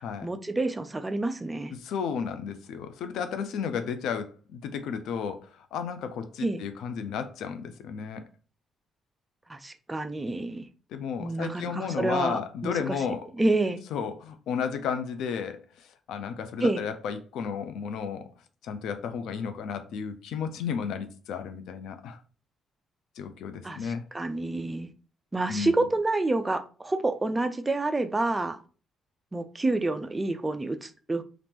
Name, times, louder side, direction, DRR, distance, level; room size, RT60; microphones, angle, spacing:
voice 1, 0.2-1.7 6.4-6.6 9.5-10.7 11.2-13.0 13.4-13.8 16.6-16.8 23.6-24.9 25.3-28.6 29.3-31.2, right 2 dB, 20° right, 0.4 m, -28 dB
voice 2, 1.8-8.2 10.9-13.3 13.9-18.3 18.6-22.2 23.2-24.1 25.5-25.7, left 7 dB, 80° left, 0.5 m, -33 dB
2.9 x 2.5 x 3.5 m
cardioid pair, 90°, 0 cm